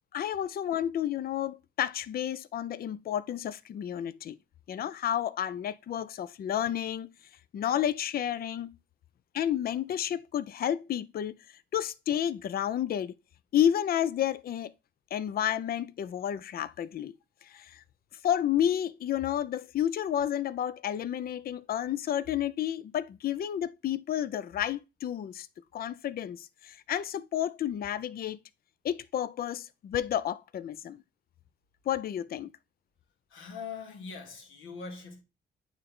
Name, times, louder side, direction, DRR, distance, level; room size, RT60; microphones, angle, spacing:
voice 1, 0.1-4.4 4.7-7.1 7.5-8.7 9.3-11.3 11.7-13.1 13.5-14.7 15.1-17.1 17.5-17.8 18.2-25.5 25.7-28.4 28.8-31.0 31.9-32.5, left 10 dB, 50° left, 0.5 m, -31 dB
voice 2, 33.3-35.2, left 5 dB, 85° left, 1.8 m, -42 dB
8.8 x 3.3 x 3.6 m
cardioid pair, 90°, 20 cm